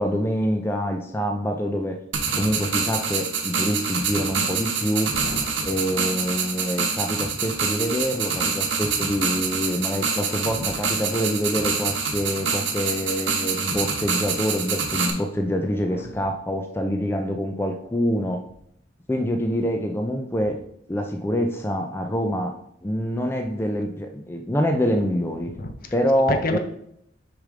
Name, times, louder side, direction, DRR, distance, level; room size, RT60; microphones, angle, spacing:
voice 1, 0.0-2.0 2.4-5.1 5.6-18.4 19.1-20.6 20.9-22.5 22.8-25.5 25.9-26.6, equal, 15° left, 4 dB, 0.4 m, -25 dB
sound 1, 2.1-15.1, right 5 dB, 70° right, 1.1 m, -26 dB
voice 2, 5.1-5.5 10.6-10.7 15.9-16.0 25.4-25.9 26.3-26.6, left 1 dB, 50° left, 7 dB, 0.7 m, -29 dB
6.5 x 4.9 x 3.7 m, 0.71 s
head